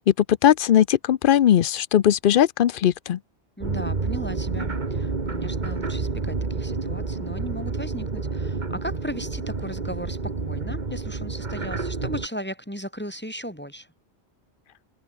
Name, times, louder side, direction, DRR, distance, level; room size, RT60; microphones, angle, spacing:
voice 1, 0.4-3.2, left 10 dB, 60° left, 0.7 m, -19 dB
voice 2, 3.6-13.9, equal, 10° left, 4.1 m, -36 dB
sound 1, 3.6-12.3, right 4 dB, 45° right, 1.8 m, -29 dB
omnidirectional pair, 1.1 m